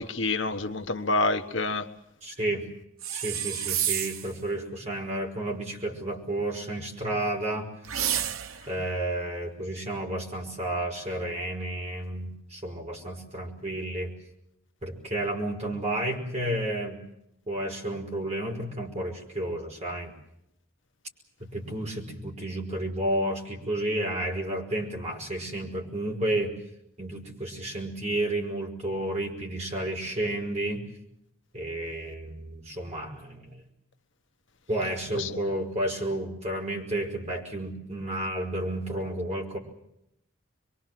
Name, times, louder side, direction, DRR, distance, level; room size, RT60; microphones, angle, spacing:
voice 1, 0.0-1.9 35.1-35.3, left 3 dB, 65° left, 1.3 m, -27 dB
voice 2, 2.2-2.6 3.1-7.7 8.7-14.1 14.8-17.0 17.5-20.1 21.4-26.6 27.0-30.8 31.5-33.6 34.7-39.6, right 1 dB, 35° right, 5.2 m, -31 dB
sound 1, 3.0-4.3 7.8-8.7, right 10 dB, 90° right, 0.9 m, -29 dB
25.5 x 23.5 x 7.7 m
head